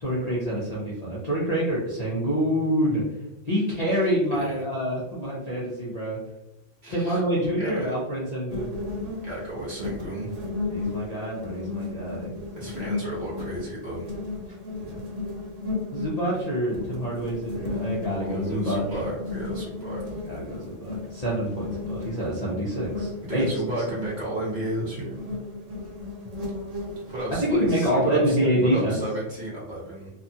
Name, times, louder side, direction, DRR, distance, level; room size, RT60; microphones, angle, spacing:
voice 1, 0.0-3.0 3.5-6.2 6.9-8.7 10.6-12.3 14.9-15.0 15.9-19.0 20.2-23.5 27.5-29.0, equal, 40° left, -7 dB, 0.6 m, -26 dB
voice 2, 4.3-4.6 6.8-7.9 9.2-10.3 12.5-14.1 18.2-20.0 23.2-25.2 27.1-28.4 28.6-30.1, right 1 dB, 40° right, -7 dB, 1.2 m, -33 dB
sound 1, 8.5-27.7, left 3 dB, 80° right, 1.1 m, -35 dB
2.7 x 2.4 x 2.6 m, 0.97 s
omnidirectional pair, 1.3 m